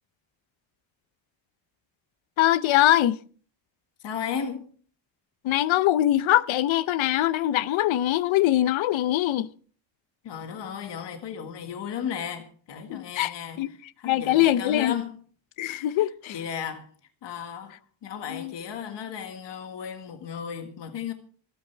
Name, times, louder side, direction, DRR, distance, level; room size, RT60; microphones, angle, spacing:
voice 1, 2.4-3.2 5.4-9.5 12.9-13.7 14.0-14.9 15.6-16.4 18.3-18.6, left 14 dB, 90° left, 0.8 m, -23 dB
voice 2, 4.0-4.7 10.2-15.1 16.3-16.9 17.2-17.7 18.0-21.1, left 8 dB, 65° left, 1.9 m, -35 dB
26.5 x 9.4 x 3.4 m
wide cardioid pair, 165°, 45 cm